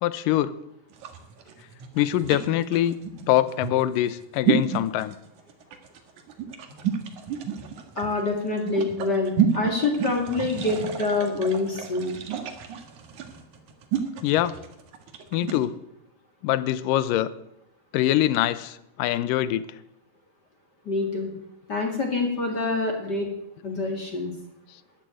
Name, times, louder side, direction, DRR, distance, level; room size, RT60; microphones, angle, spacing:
voice 1, 0.0-0.5 2.0-3.0 3.3-5.2 14.2-14.6 15.3-15.7 16.4-17.3 17.9-19.6, left 13 dB, 80° left, 16 dB, 2.4 m, -23 dB
sound 1, 0.9-15.7, right 8 dB, 60° right, 2.9 m, -30 dB
voice 2, 8.0-12.2 20.9-21.3 21.7-23.3 23.6-24.3, left 3 dB, 35° left, 2 dB, 2.3 m, -26 dB
13.5 x 10.5 x 9.1 m, 0.83 s
omnidirectional pair, 3.9 m